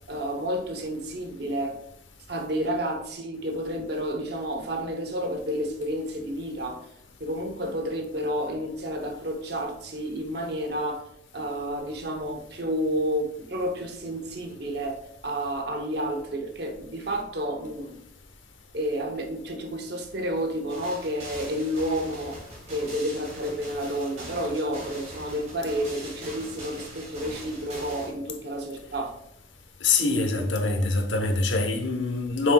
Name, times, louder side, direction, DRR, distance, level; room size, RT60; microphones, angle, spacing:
voice 1, 0.1-1.8 2.3-6.8 7.2-11.0 11.3-18.0 18.7-22.4 22.7-29.2 30.0-30.9, equal, 55° right, 0.9 m, -30 dB
sound 1, 20.7-28.1, right 1 dB, 35° right, 2.2 m, -42 dB
voice 2, 29.8-32.5, left 3 dB, 75° left, 1.0 m, -24 dB
7.6 x 6.4 x 2.3 m
head